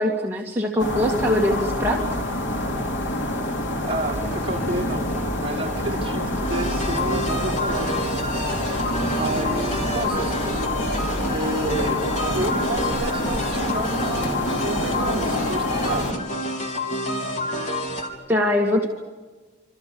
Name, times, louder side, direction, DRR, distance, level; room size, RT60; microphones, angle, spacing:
voice 1, 0.0-2.0 18.3-18.9, left 1 dB, 10° right, -2 dB, 2.2 m, -22 dB
sound 1, 0.8-16.1, left 1 dB, 75° left, 2.8 m, -27 dB
voice 2, 3.9-5.1 5.4-8.3 9.1-10.5 11.3-12.0 12.3-16.1, right 2 dB, 30° right, -4 dB, 5.6 m, -30 dB
sound 2, 4.1-12.9, right 1 dB, 15° left, 3.9 m, -37 dB
sound 3, 6.4-18.1, left 1 dB, 40° left, 4.2 m, -28 dB
28.0 x 27.5 x 7.0 m, 1.3 s
head